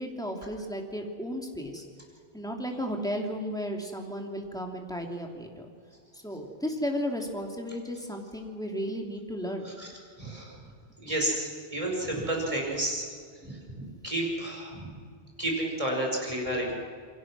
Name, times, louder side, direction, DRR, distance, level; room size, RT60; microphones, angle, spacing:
voice 1, 0.0-1.8 2.3-5.7 6.1-9.7, equal, 5° left, 1 dB, 3.0 m, -34 dB
voice 2, 10.2-10.6 11.0-13.1 13.4-13.7 14.0-14.9 15.4-16.8, right 1 dB, 30° right, -1 dB, 5.4 m, -31 dB
28.5 x 23.0 x 6.3 m, 2.2 s
omnidirectional pair, 1.1 m